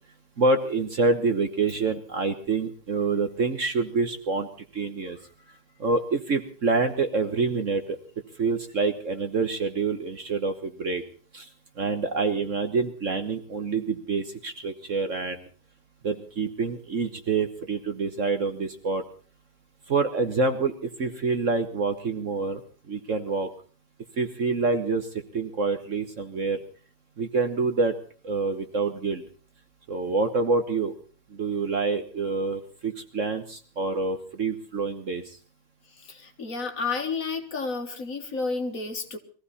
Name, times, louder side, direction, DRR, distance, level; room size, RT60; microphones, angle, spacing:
voice 1, 0.4-5.2 5.8-8.0 8.4-11.0 11.3-11.5 11.8-15.5 16.0-19.0 19.9-22.6 22.9-23.5 24.2-26.6 27.2-28.0 28.2-29.2 29.9-30.9 31.3-35.4, right 4 dB, 45° right, 7 dB, 1.4 m, -27 dB
voice 2, 36.0-39.2, left 4 dB, 50° left, 5 dB, 2.0 m, -31 dB
22.0 x 15.0 x 4.2 m, 0.41 s
omnidirectional pair, 2.0 m